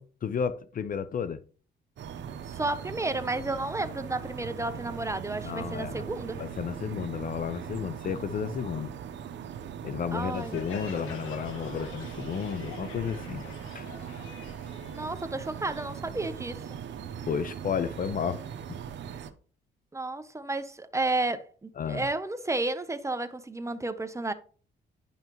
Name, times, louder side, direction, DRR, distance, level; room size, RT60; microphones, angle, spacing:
voice 1, 0.0-1.4 5.4-6.0 6.4-8.9 9.8-14.1 17.2-18.4 18.7-18.8 21.8-22.1, left 7 dB, 45° left, 0.5 m, -32 dB
sound 1, 2.0-19.3, right 8 dB, 65° right, 0.9 m, -40 dB
voice 2, 2.5-6.4 10.1-10.6 14.9-16.8 19.9-24.3, right 2 dB, 15° right, 0.7 m, -32 dB
Crowd, 10.3-15.8, left 5 dB, 85° left, 1.4 m, -45 dB
10.5 x 5.6 x 3.0 m
cardioid pair, 90°, 20 cm